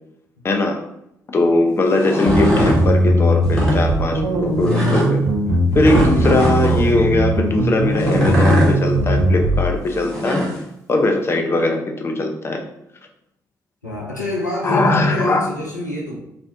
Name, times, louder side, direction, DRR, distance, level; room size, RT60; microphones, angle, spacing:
voice 1, 0.4-0.8 1.3-5.2 5.7-10.5 10.9-12.6 14.6-15.5, left 2 dB, 25° left, 3 dB, 0.4 m, -20 dB
sound 1, 1.9-2.8 3.4-3.8 4.7-5.1 5.8-6.8 8.0-8.7 9.9-10.6, left 1 dB, 5° left, 0.9 m, -21 dB
sound 2, 2.3-9.7, right 1 dB, 70° right, 0.4 m, -19 dB
voice 2, 5.9-6.3 13.8-16.2, left 1 dB, 90° left, -3 dB, 0.4 m, -27 dB
2.5 x 2.0 x 2.6 m, 0.79 s
figure-of-eight pair, 40°, 9 cm